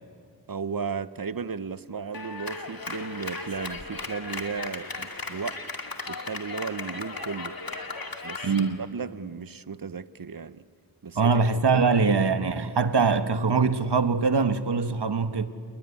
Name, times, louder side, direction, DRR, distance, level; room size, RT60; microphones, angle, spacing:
voice 1, 0.5-5.6 6.1-7.5 8.2-10.6 11.0-11.4 11.8-11.9, right 5 dB, 55° right, 0.9 m, -35 dB
Clapping, 2.1-8.7, left 3 dB, 55° left, 2.4 m, -36 dB
voice 2, 8.4-8.8 11.1-15.5, right 4 dB, 75° right, 1.3 m, -23 dB
28.0 x 21.5 x 9.7 m
wide cardioid pair, 60°, 41 cm